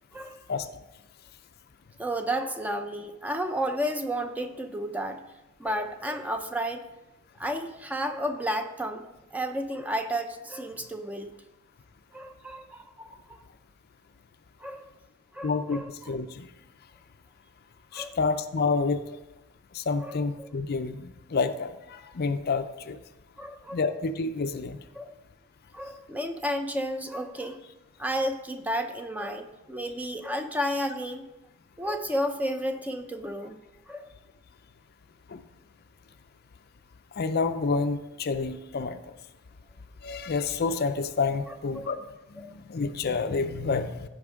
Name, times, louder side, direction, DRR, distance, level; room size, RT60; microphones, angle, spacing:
voice 1, 0.1-0.4 2.0-5.2 5.6-6.8 7.4-9.1 9.3-11.3 12.1-13.2 14.6-14.9 15.3-15.9 17.9-18.2 20.0-20.5 23.4-23.8 25.0-25.2 25.7-27.6 28.0-31.3 31.8-33.6 33.9-34.1 41.5-41.9 42.4-42.5, equal, 5° right, 6 dB, 0.6 m, -32 dB
voice 2, 15.4-16.5 17.9-19.0 19.7-23.0 23.7-24.8 35.3-35.4 37.2-39.0 40.0-42.0 42.3-44.1, left 4 dB, 50° left, 10 dB, 0.5 m, -29 dB
15.5 x 5.3 x 3.6 m, 1.0 s
head